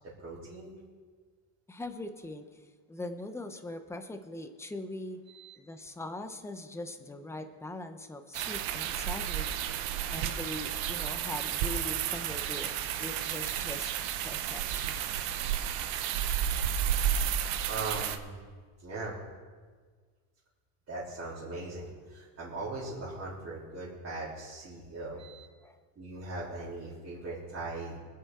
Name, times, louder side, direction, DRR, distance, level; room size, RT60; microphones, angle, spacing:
voice 1, 0.2-0.7 5.3-5.6 17.7-18.4 18.8-19.1 20.9-25.5 26.0-28.0, right 2 dB, 30° right, -9 dB, 3.5 m, -39 dB
voice 2, 1.7-2.6 2.9-5.2 5.6-9.8 10.1-13.9 14.2-15.1 25.6-25.8, left 2 dB, 5° left, 7 dB, 0.6 m, -41 dB
sound 1, 8.3-18.2, right 10 dB, 80° right, 1.1 m, -32 dB
25.5 x 8.6 x 3.7 m, 1.5 s
cardioid pair, 160°, 48 cm